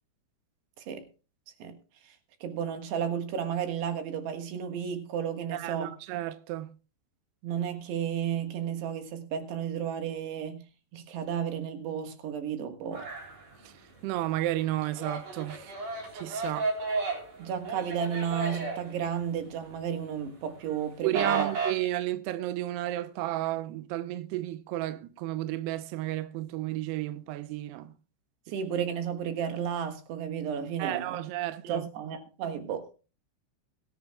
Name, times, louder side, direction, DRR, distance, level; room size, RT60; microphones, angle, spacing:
voice 1, 2.4-5.9 7.4-10.6 10.9-13.1 17.4-21.5 28.5-31.2 31.6-32.9, right 8 dB, 65° right, 3.3 m, -33 dB
voice 2, 5.5-6.7 13.6-13.7 14.0-15.7 16.1-16.6 21.0-27.9 30.8-31.8, right 15 dB, 90° right, 2.4 m, -32 dB
sound 1, 12.9-14.0 14.3-19.8 20.1-21.7, right 4 dB, 40° right, 4.8 m, -33 dB
22.0 x 10.5 x 2.3 m
omnidirectional pair, 5.7 m